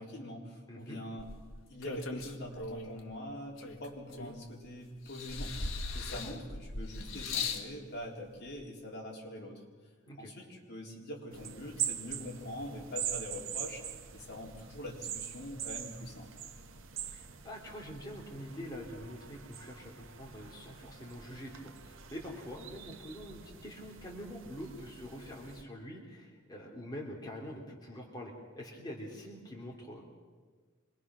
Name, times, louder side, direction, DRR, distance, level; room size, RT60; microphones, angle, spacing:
voice 1, 0.0-1.3 1.7-9.6 10.2-13.9 14.1-16.3, left 1 dB, 55° left, -1 dB, 3.9 m, -44 dB
voice 2, 0.7-1.0 6.1-6.4 10.0-10.3 17.1-30.0, equal, 20° left, -2 dB, 3.0 m, -45 dB
sound 1, 1.2-3.0 3.6-4.6 5.1-7.7 8.6-8.7, left 3 dB, 80° left, 1.6 m, -39 dB
sound 2, 11.3-25.6, right 9 dB, 75° right, 1.2 m, -43 dB
25.5 x 21.5 x 6.2 m, 1.5 s
head